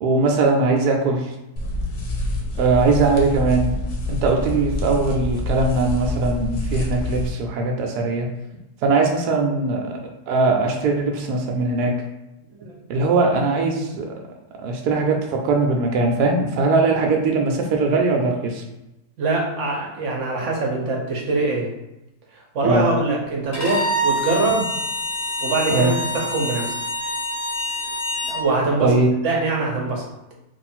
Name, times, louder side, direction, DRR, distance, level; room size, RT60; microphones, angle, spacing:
voice 1, 0.0-1.3 2.6-3.7 4.1-8.3 8.8-10.0 10.3-11.9 12.9-14.1 14.6-18.6 22.6-22.8 25.7-25.9 28.8-29.1, right 3 dB, 85° right, 1 dB, 1.1 m, -20 dB
sound 1, 1.6-7.3, left 1 dB, 85° left, 1.3 m, -26 dB
voice 2, 19.2-21.7 22.3-24.7 25.4-26.8 28.3-28.9 29.2-30.1, right 2 dB, 60° right, -1 dB, 1.0 m, -23 dB
Bowed string instrument, 23.5-28.4, equal, 15° left, 0.7 m, -26 dB
3.3 x 2.4 x 4.2 m, 0.94 s
omnidirectional pair, 1.6 m